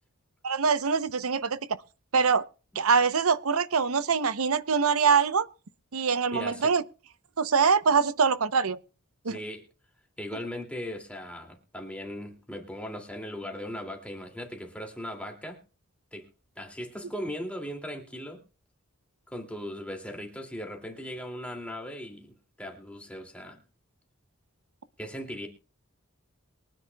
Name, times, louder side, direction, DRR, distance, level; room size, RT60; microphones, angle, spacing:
voice 1, 0.4-1.6 2.1-2.4 2.8-5.5 5.9-6.8 7.4-8.8 9.2-9.4, right 5 dB, 80° right, 0.7 m, -24 dB
voice 2, 6.3-6.7 9.3-9.6 10.2-15.6 16.1-16.3 16.6-18.4 19.3-23.6 25.0-25.5, equal, 5° left, 2.5 m, -38 dB
23.0 x 10.0 x 2.3 m
head